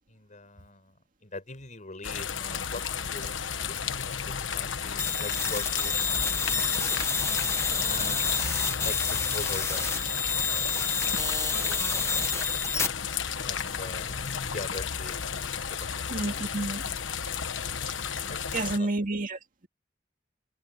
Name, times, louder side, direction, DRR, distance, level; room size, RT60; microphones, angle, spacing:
voice 1, 0.1-1.0 1.2-3.8 4.3-7.3 7.8-12.6 13.4-15.2 15.5-15.9 18.3-18.9, left 2 dB, 40° left, 5.6 m, -43 dB
sound 1, 2.0-18.8, left 7 dB, 85° left, 1.2 m, -33 dB
sound 2, 5.0-12.9, left 5 dB, 15° left, 1.4 m, -29 dB
voice 2, 16.1-16.9 17.8-18.0 18.5-19.7, right 2 dB, 45° right, 2.4 m, -31 dB
head